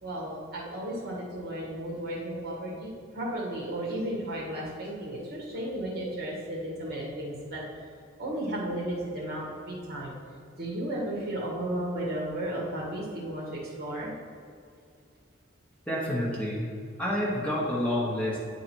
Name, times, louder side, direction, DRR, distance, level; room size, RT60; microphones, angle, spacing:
voice 1, 0.0-7.6 8.2-10.1 10.6-14.1, right 1 dB, 50° right, -3 dB, 1.7 m, -34 dB
voice 2, 15.9-16.7 17.0-18.4, left 1 dB, 5° left, -6 dB, 1.1 m, -28 dB
9.2 x 4.0 x 4.5 m, 2.3 s
head